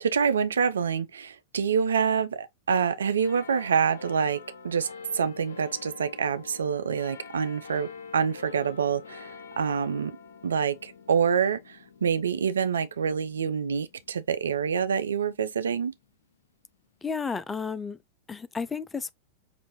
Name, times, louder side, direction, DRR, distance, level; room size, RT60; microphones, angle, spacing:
voice 1, 0.0-4.9 5.1-10.2 10.4-15.9, right 6 dB, 80° right, 0.5 m, -26 dB
sound 1, 3.2-16.1 16.7-16.8, left 5 dB, 80° left, 0.7 m, -47 dB
voice 2, 17.0-18.0 18.3-19.1, left 5 dB, 15° left, 0.4 m, -32 dB
6.1 x 2.6 x 2.9 m
hypercardioid pair, 100°, 0 cm